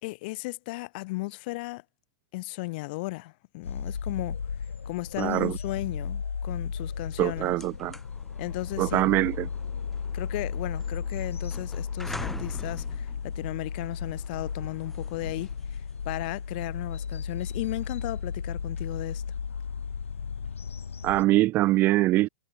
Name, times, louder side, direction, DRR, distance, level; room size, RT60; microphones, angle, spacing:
voice 1, 0.0-1.8 2.3-4.4 4.8-7.5 8.4-9.0 10.1-19.2, left 23 dB, 45° left, 2.6 m, -35 dB
sound 1, 3.6-21.2, left 6 dB, 75° left, 0.6 m, -34 dB
voice 2, 5.2-5.6 7.2-7.9 8.8-9.5 21.0-22.3, right 17 dB, 30° right, 0.3 m, -23 dB
sound 2, 7.6-18.3, left 1 dB, 5° left, 1.3 m, -46 dB
figure-of-eight pair, 105°, 7 cm